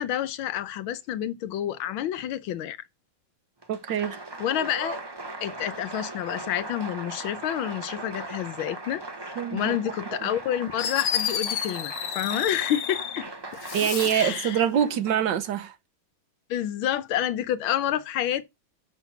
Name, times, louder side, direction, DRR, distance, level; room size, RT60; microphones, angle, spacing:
voice 1, 0.0-2.8 4.4-5.0 5.4-13.3 14.1-14.6 16.5-18.4, left 11 dB, 85° left, 1.6 m, -29 dB
Applause, 3.6-15.5, right 2 dB, 25° right, 0.5 m, -39 dB
voice 2, 3.7-4.2 9.4-9.8 13.7-15.8, right 9 dB, 70° right, 1.4 m, -25 dB
Fireworks, 10.4-10.5 10.8-13.2 13.6-14.4, left 8 dB, 60° left, 0.8 m, -31 dB
6.9 x 5.8 x 5.8 m
omnidirectional pair, 2.1 m